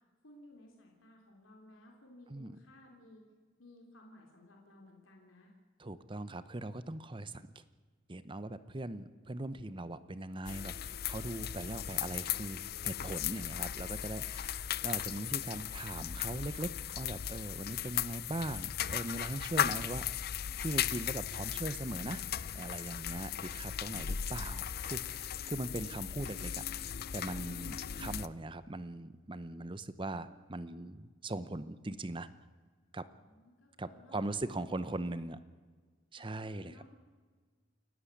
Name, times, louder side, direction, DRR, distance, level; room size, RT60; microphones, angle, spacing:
voice 1, 0.2-3.2 3.6-5.5 33.0-35.3 36.2-36.9, left 1 dB, 90° left, 0 dB, 3.5 m, -58 dB
voice 2, 5.8-7.6 8.1-20.0 20.6-22.2 22.5-32.3 32.9-33.1 33.8-35.4 36.1-36.7, right 2 dB, 25° right, 14 dB, 0.8 m, -40 dB
sound 1, 10.5-28.3, left 10 dB, 50° left, 0.5 m, -37 dB
29.0 x 11.0 x 8.5 m, 1.5 s
head